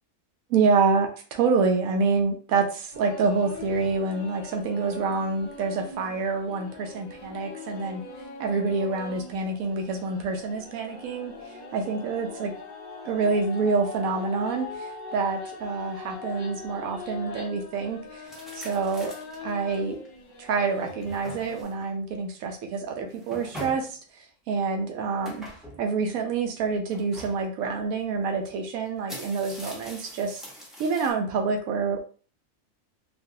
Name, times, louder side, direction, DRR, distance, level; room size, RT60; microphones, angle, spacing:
voice 1, 0.5-8.0 8.4-12.5 13.0-18.2 18.5-19.1 19.4-20.0 20.4-24.0 24.5-25.5 25.8-30.4 30.8-32.0, right 4 dB, 85° right, 3 dB, 1.0 m, -27 dB
sound 1, 2.9-21.6, left 3 dB, 50° left, 0.5 m, -42 dB
sound 2, 18.2-19.5 20.0-20.1 20.7-21.8 23.0-24.0 25.2-25.8 26.9-27.4 28.4-28.5 28.9-31.1, equal, ahead, 0.6 m, -42 dB
3.2 x 2.5 x 2.7 m, 0.40 s
omnidirectional pair, 1.4 m